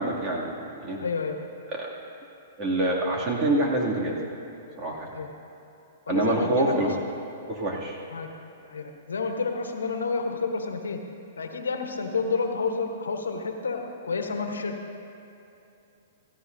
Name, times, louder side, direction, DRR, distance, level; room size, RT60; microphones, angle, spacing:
voice 1, 0.0-1.0 1.7-1.9 2.6-4.2 4.8-5.1 6.1-6.9 7.5-8.0, right 2 dB, 35° right, -3 dB, 2.6 m, -26 dB
voice 2, 1.0-1.4 5.1-5.3 6.1-6.9 8.1-8.3 8.7-11.0 11.4-14.7, left 4 dB, 90° left, 5 dB, 1.1 m, -29 dB
16.0 x 15.5 x 2.7 m, 2.8 s
hypercardioid pair, 125°, 0 cm